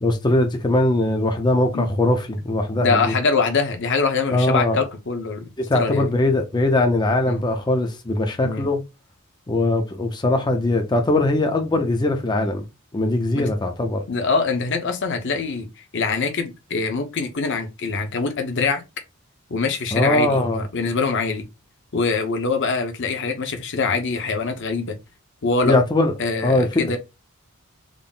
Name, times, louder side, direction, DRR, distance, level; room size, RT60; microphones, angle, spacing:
voice 1, 0.0-3.1 4.3-4.8 5.6-8.8 9.5-12.6 12.9-14.0 19.9-20.6 25.6-26.1 26.4-27.0, left 2 dB, 20° left, 0.5 m, -21 dB
voice 2, 2.8-6.0 7.2-7.4 8.4-8.7 13.3-13.5 14.1-15.7 15.9-18.8 19.5-21.4 21.9-24.9 25.4-25.8 26.2-27.0, left 4 dB, 55° left, 0.8 m, -24 dB
3.8 x 2.0 x 3.7 m
head